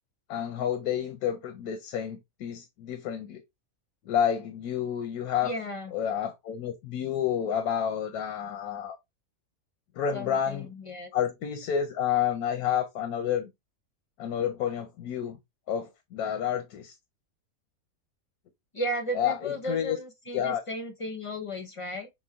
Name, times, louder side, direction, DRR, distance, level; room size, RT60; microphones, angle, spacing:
voice 1, 0.3-3.4 4.1-5.5 5.9-9.0 10.0-10.7 11.1-13.5 14.2-15.4 15.7-16.9 19.1-20.0 20.3-20.6, left 9 dB, 90° left, 1.2 m, -29 dB
voice 2, 5.4-5.9 10.1-11.1 18.7-22.1, equal, 40° left, 0.4 m, -35 dB
6.0 x 2.0 x 3.5 m
omnidirectional pair, 1.5 m